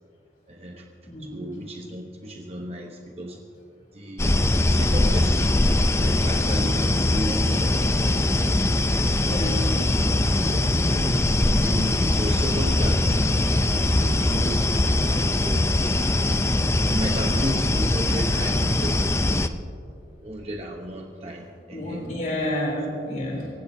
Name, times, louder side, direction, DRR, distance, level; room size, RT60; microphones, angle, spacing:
voice 1, 0.5-0.8 1.2-3.4 3.9-5.5 6.0-8.3 9.3-9.4 10.0-10.1 10.4-11.2 11.6-13.2 13.9-14.7 14.9-16.0 16.9-19.5 20.2-22.1, right 1 dB, 35° right, 1 dB, 1.0 m, -34 dB
voice 2, 1.0-1.4 6.0-6.4 7.2-7.6 9.2-9.6 11.5-11.6 14.7-14.8 21.7-23.5, left 1 dB, 45° left, -2 dB, 3.4 m, -30 dB
sound 1, 4.2-19.5, left 1 dB, 15° left, 0.5 m, -21 dB
26.0 x 16.0 x 2.8 m, 2.6 s
head